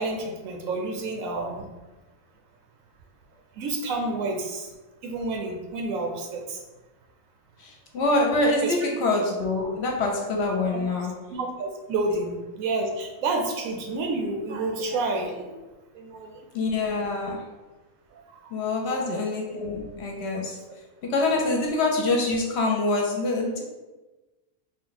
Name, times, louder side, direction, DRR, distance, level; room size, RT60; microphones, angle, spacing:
voice 1, 0.0-1.7 3.6-4.7 5.0-6.6 8.6-8.7 9.7-9.8 10.7-10.8 11.3-15.6 15.9-16.3 17.1-17.3 18.9-19.3, right 2 dB, 90° right, 3 dB, 1.1 m, -29 dB
voice 2, 7.6-11.1 16.5-17.4 18.5-20.6 21.1-23.6, left 2 dB, 60° left, 0 dB, 0.8 m, -25 dB
3.8 x 2.2 x 3.9 m, 1.2 s
omnidirectional pair, 1.4 m